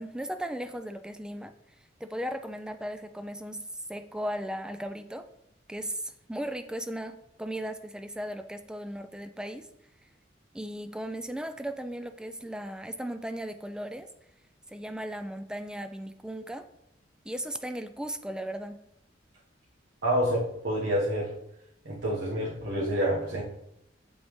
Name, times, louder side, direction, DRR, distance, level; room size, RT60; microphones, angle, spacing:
voice 1, 0.0-1.5 2.0-3.6 3.9-5.3 5.7-9.7 10.5-14.1 14.7-16.7 17.3-18.8, equal, 5° right, 9 dB, 0.3 m, -36 dB
voice 2, 20.0-21.3 21.8-23.4, equal, 90° right, -5 dB, 1.1 m, -28 dB
7.2 x 5.3 x 3.1 m, 0.81 s
head